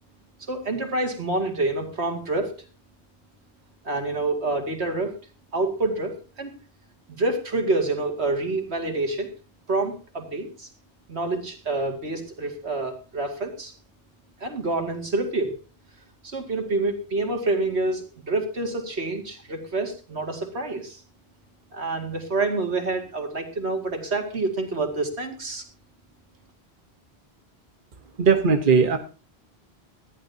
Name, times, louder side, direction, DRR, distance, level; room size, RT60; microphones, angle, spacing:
voice 1, 0.5-2.5 3.8-5.1 5.5-6.5 7.2-9.3 9.7-10.7 11.1-13.7 14.4-15.6 16.2-21.0 21.7-25.6, right 2 dB, 80° right, 2.6 m, -27 dB
voice 2, 28.2-29.0, right 5 dB, 50° right, 1.3 m, -18 dB
19.5 x 13.5 x 2.8 m
omnidirectional pair, 1.1 m